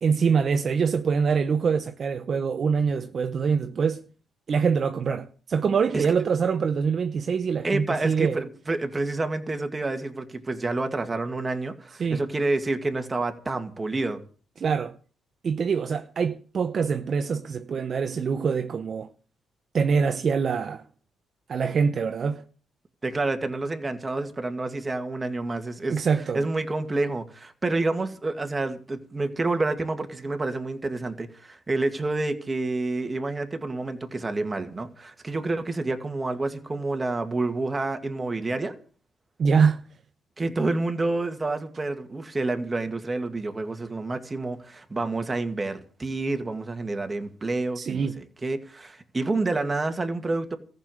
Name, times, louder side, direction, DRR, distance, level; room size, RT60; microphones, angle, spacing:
voice 1, 0.0-4.0 4.5-8.4 12.0-12.2 14.6-14.9 15.4-19.1 19.7-20.8 21.5-22.4 25.9-26.4 39.4-39.9 47.8-48.2, right 6 dB, 50° right, 0.7 m, -24 dB
voice 2, 7.6-14.2 23.0-26.0 26.3-38.8 40.4-50.6, right 2 dB, 20° right, 2.0 m, -28 dB
14.5 x 6.8 x 9.2 m
cardioid pair, 90°, 0 cm